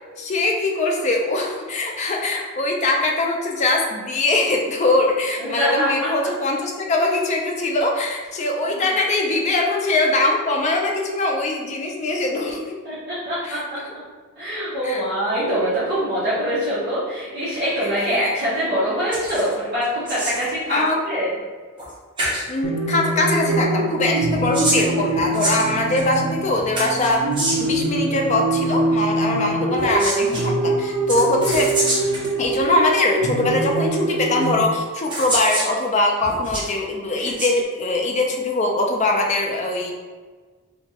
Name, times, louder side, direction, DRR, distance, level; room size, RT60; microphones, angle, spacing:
voice 1, 0.2-12.8 13.4-13.9 14.8-15.0 17.8-18.4 20.7-21.0 22.5-27.2 27.6-31.7 32.4-39.9, left 2 dB, 30° left, 1 dB, 0.3 m, -22 dB
voice 2, 5.4-5.9 8.7-8.9 12.8-13.6 14.4-21.3, equal, 50° right, -11 dB, 0.8 m, -24 dB
sound 1, 19.1-19.5 19.8-20.5 21.8-21.9 22.2-22.4 24.2-26.1 26.7-27.8 29.7-30.4 31.1-32.3 33.2-33.3 34.4-34.5 35.1-35.7 36.2-36.7 37.2-37.5, right 1 dB, 20° right, 0.6 m, -26 dB
sound 2, 22.6-34.6, right 2 dB, 85° right, 0.4 m, -24 dB
2.9 x 2.2 x 2.8 m, 1.4 s
head